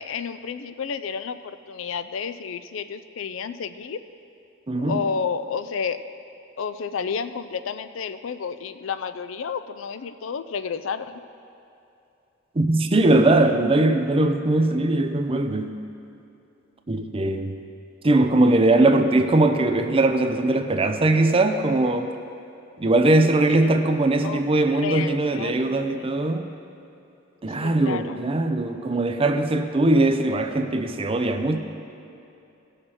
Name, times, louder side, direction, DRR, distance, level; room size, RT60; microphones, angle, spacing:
voice 1, 0.0-4.0 4.8-6.0 6.6-11.2 23.5-23.8 24.2-24.5 24.8-26.1 27.6-28.2, left 6 dB, 75° left, 11 dB, 0.4 m, -31 dB
voice 2, 4.7-5.0 12.5-15.8 16.9-17.6 18.0-22.1 22.8-26.5 27.4-31.6, right 2 dB, 30° right, 6 dB, 0.6 m, -20 dB
17.5 x 6.6 x 4.4 m, 2.8 s
head